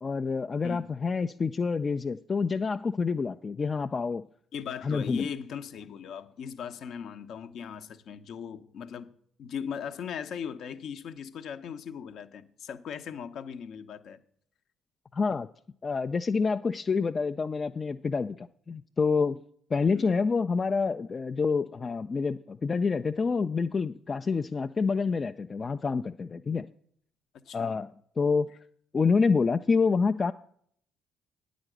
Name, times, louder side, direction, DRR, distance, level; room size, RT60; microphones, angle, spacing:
voice 1, 0.0-4.2 4.8-5.3 15.1-15.5 15.8-19.4 19.7-26.7 27.5-27.9 28.2-28.5 28.9-30.3, left 4 dB, 35° left, 0.4 m, -27 dB
voice 2, 4.5-9.1 9.4-14.2 19.9-20.0 27.5-27.7, left 7 dB, 60° left, 0.8 m, -38 dB
9.6 x 5.1 x 7.8 m
hypercardioid pair, 50°, 0 cm